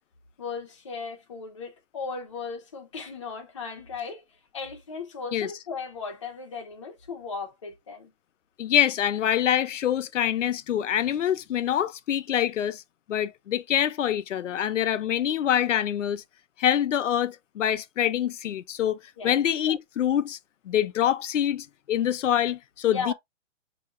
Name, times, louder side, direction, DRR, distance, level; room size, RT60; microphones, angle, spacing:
voice 1, 0.4-4.2 4.5-8.1 19.2-19.4 22.8-23.1, left 5 dB, 25° left, 0.7 m, -36 dB
voice 2, 8.6-12.8 13.1-16.2 16.6-20.4 20.7-23.1, left 10 dB, 85° left, 0.6 m, -25 dB
6.5 x 2.8 x 2.4 m
hypercardioid pair, 180°, 36 cm